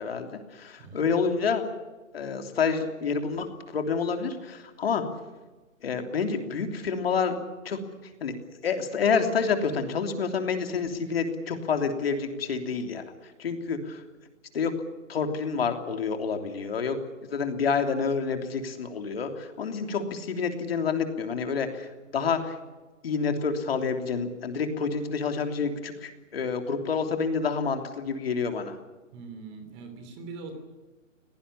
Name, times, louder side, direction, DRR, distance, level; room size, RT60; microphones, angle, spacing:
voice 1, 0.0-1.7 2.1-5.0 5.8-7.4 7.6-7.8 8.2-8.3 8.6-14.0 14.5-14.7 15.1-17.0 17.3-22.6 23.0-28.8, left 5 dB, 50° left, 6 dB, 3.2 m, -28 dB
voice 2, 29.1-30.5, right 4 dB, 20° right, 7 dB, 3.1 m, -42 dB
22.5 x 18.5 x 10.0 m, 1.2 s
hypercardioid pair, 160°, 39 cm